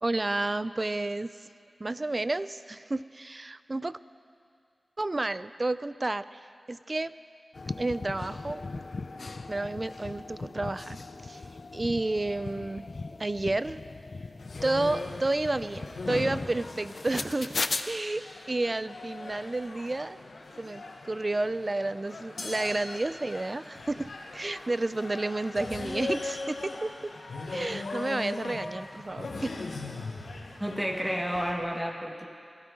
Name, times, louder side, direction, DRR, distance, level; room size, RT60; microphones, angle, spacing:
voice 1, 0.0-1.3 1.8-4.0 5.0-6.4 6.7-7.1 7.8-8.8 9.5-11.4 11.7-12.9 13.2-13.8 14.6-17.6 17.8-20.2 20.6-27.1 27.5-29.3, right 2 dB, 40° right, 14 dB, 0.4 m, -31 dB
sound 1, 7.5-17.8, left 3 dB, 65° left, 0.6 m, -38 dB
sound 2, 14.4-31.5, left 3 dB, 90° left, 1.4 m, -40 dB
voice 2, 30.6-32.3, equal, 10° right, 2 dB, 1.6 m, -31 dB
23.0 x 13.0 x 3.9 m, 2.2 s
cardioid pair, 45°, 0 cm